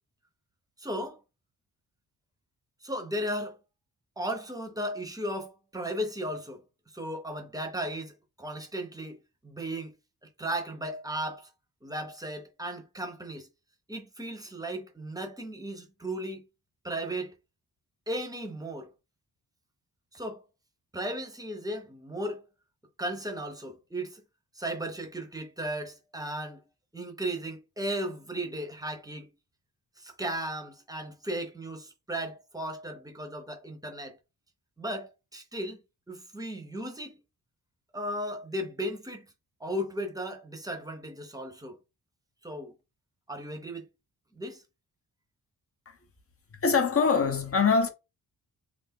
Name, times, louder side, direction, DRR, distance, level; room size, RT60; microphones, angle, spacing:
voice 1, 0.8-1.2 2.8-3.6 4.2-6.6 6.9-8.1 8.4-9.9 10.4-11.5 11.8-13.5 13.9-16.4 16.8-17.3 18.1-18.9 20.1-20.4 20.9-22.4 23.0-24.2 24.5-26.6 26.9-29.3 30.0-34.2 34.8-35.8 36.1-37.1 37.9-39.3 39.6-41.8 42.4-42.7 43.3-43.9 44.3-44.6, right 1 dB, 10° right, 0.7 m, -35 dB
voice 2, 46.6-47.9, left 5 dB, 35° left, 0.6 m, -23 dB
3.3 x 2.5 x 3.6 m
wide cardioid pair, 140°, 40 cm